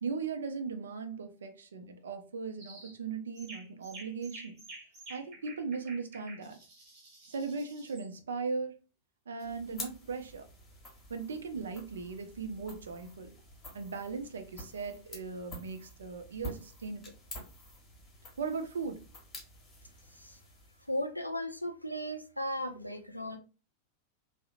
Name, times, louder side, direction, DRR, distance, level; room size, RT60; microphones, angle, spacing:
voice 1, 0.0-4.5 5.1-6.6 7.3-8.8 9.3-10.4 11.1-13.3 13.7-17.0 18.4-19.0, right 4 dB, 70° right, 0.4 m, -38 dB
sound 1, 2.6-3.0 3.4-8.1, right 2 dB, 40° right, 1.3 m, -50 dB
sound 2, 9.4-21.1, left 1 dB, 20° left, 1.0 m, -49 dB
voice 2, 20.9-23.4, equal, 90° left, 0.3 m, -36 dB
2.7 x 2.0 x 2.4 m
figure-of-eight pair, 90°, 0 cm